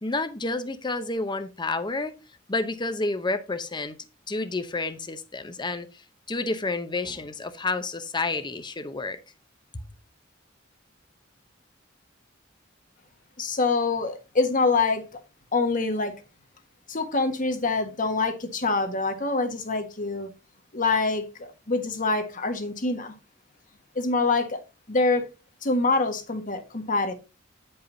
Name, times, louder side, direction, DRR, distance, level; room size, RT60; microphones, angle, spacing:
voice 1, 0.0-2.1 2.5-3.9 4.3-5.9 6.3-9.2, left 3 dB, 25° left, 0.8 m, -29 dB
voice 2, 13.4-15.0 15.5-16.1 16.9-20.3 20.7-23.1 23.9-24.6 24.9-25.2 25.6-27.1, left 3 dB, 45° left, 1.5 m, -25 dB
9.5 x 5.6 x 4.0 m
head